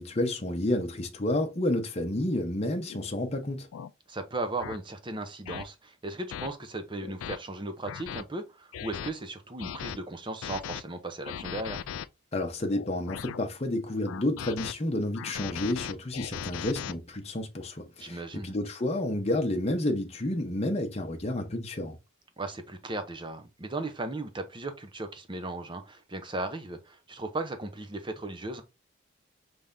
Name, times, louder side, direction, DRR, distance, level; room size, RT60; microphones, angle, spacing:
voice 1, 0.0-3.7 12.3-22.0, left 1 dB, 30° left, 0.8 m, -30 dB
sound 1, 2.9-3.1 3.7-3.9 4.6-4.8 5.5-5.6 6.3-6.5 7.0-7.4 7.9-8.2 8.7-9.1 9.6-10.0 10.4-10.8 11.3-12.1 12.7-13.4 14.1-14.7 15.1-16.9, left 9 dB, 80° left, 0.3 m, -38 dB
voice 2, 4.1-11.8 18.0-18.5 22.4-28.6, right 2 dB, 25° right, 0.7 m, -36 dB
5.4 x 3.4 x 2.6 m
head